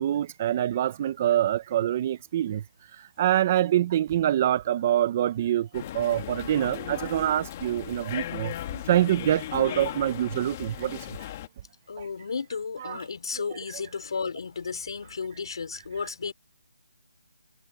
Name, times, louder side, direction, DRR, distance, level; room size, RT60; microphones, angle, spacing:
voice 1, 0.0-2.6 2.9-11.2 12.0-12.1 12.8-13.0, right 12 dB, 15° right, 0.4 m, -25 dB
sound 1, 5.7-11.5, left 12 dB, 20° left, 1.4 m, -37 dB
voice 2, 11.9-16.3, left 5 dB, 45° left, 3.7 m, -33 dB
hypercardioid pair, 175°, 4 cm